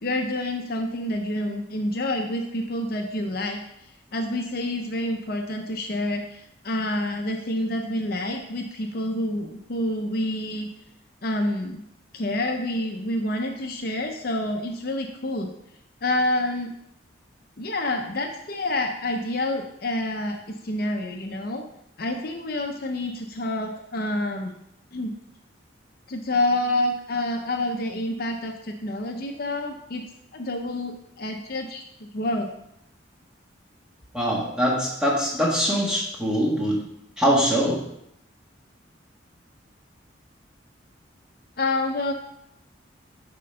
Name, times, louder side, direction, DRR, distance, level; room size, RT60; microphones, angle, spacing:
voice 1, 0.0-3.6 4.1-10.7 11.2-11.8 12.1-15.5 16.0-16.8 17.6-21.6 22.0-24.5 24.9-25.1 26.1-30.0 30.3-32.5 41.6-42.1, left 1 dB, 50° left, 4 dB, 0.7 m, -28 dB
voice 2, 34.1-36.8 37.2-37.8, equal, 5° right, -4 dB, 1.6 m, -23 dB
8.2 x 3.8 x 5.5 m, 0.77 s
head